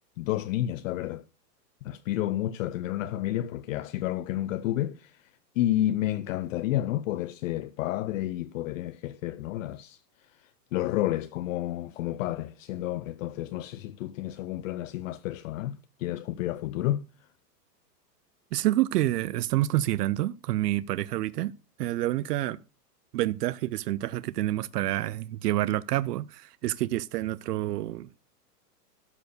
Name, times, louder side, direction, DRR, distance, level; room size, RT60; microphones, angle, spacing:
voice 1, 0.2-1.2 1.8-5.3 5.6-10.0 10.4-17.1, left 14 dB, 55° left, 0.6 m, -30 dB
voice 2, 18.5-21.5 21.8-22.6 23.1-28.2, right 15 dB, 75° right, 0.6 m, -28 dB
12.5 x 4.6 x 6.6 m
hypercardioid pair, 135°, 48 cm